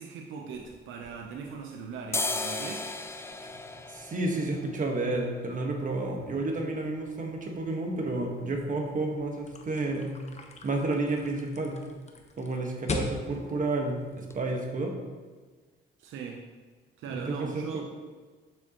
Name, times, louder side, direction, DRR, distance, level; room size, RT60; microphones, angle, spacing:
voice 1, 0.0-2.9 16.0-16.5 17.0-17.9, right 5 dB, 80° right, 1 dB, 0.7 m, -39 dB
sound 1, 0.5-1.6 2.0-9.7 10.0-10.1 10.3-10.9 11.2-11.4 11.7-11.9 12.2-12.9 13.3-13.4 13.9-14.0 14.3-14.4, left 3 dB, 15° left, 0.4 m, -38 dB
voice 2, 3.9-10.1 10.6-11.8 12.4-14.9 17.1-17.9, right 2 dB, 40° right, 1 dB, 1.4 m, -31 dB
sound 2, 9.5-14.8, left 3 dB, 35° left, 0.9 m, -39 dB
7.0 x 6.5 x 3.0 m, 1.4 s
cardioid pair, 90°, 20 cm